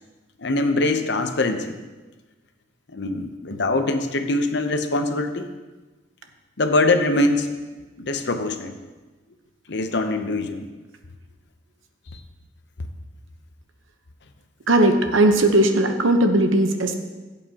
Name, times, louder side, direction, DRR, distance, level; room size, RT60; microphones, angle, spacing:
voice 1, 0.4-1.8 2.9-5.5 6.6-7.5 8.0-8.8 9.7-10.7, left 2 dB, 60° left, 7 dB, 0.8 m, -23 dB
voice 2, 14.7-16.9, right 1 dB, 80° right, 5 dB, 1.0 m, -18 dB
16.0 x 8.1 x 2.9 m, 1.2 s
head